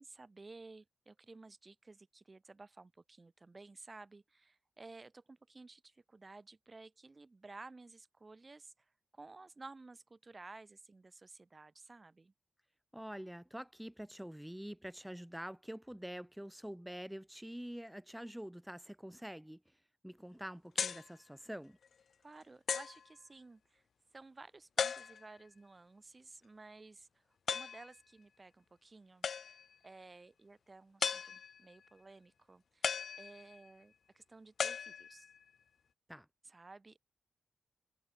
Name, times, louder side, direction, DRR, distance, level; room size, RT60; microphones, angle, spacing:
voice 1, 0.0-12.3 22.2-23.8 24.1-29.5 29.8-35.3 36.4-37.0, right 3 dB, 30° right, 4.3 m, -55 dB
voice 2, 12.9-21.8 36.1-36.3, equal, 5° right, 3.8 m, -46 dB
sound 1, 20.8-21.1 21.8-21.9 22.7-23.0 24.8-25.4 27.5-27.9 29.2-29.7 31.0-31.7 32.8-33.7 34.6-35.4, left 6 dB, 65° left, 0.7 m, -37 dB
cardioid pair, 95°, 0 cm